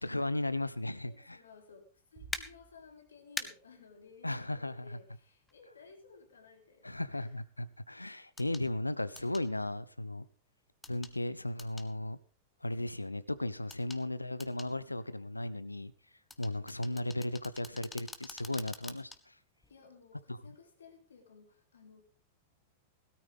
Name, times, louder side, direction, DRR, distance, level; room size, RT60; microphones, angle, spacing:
voice 1, 0.0-1.4 4.2-5.0 6.8-10.3 10.9-12.2 12.6-15.9 16.4-19.4 20.3-20.4, left 1 dB, 90° left, 17 dB, 0.7 m, -36 dB
voice 2, 1.1-7.4 13.8-14.1 19.7-22.0, left 5 dB, 75° left, 4 dB, 3.1 m, -57 dB
sound 1, 2.2-3.6, right 5 dB, 45° right, 2.2 m, -56 dB
sound 2, 2.3-2.4 3.4-3.5 5.5-5.6 8.4-8.6 9.2-9.5 10.8-11.1 11.6-11.9 13.7-14.0 14.4-14.7 16.3-19.2 19.6-19.7, left 3 dB, 10° left, 1.2 m, -43 dB
17.0 x 13.0 x 3.6 m, 0.40 s
figure-of-eight pair, 95°, 0 cm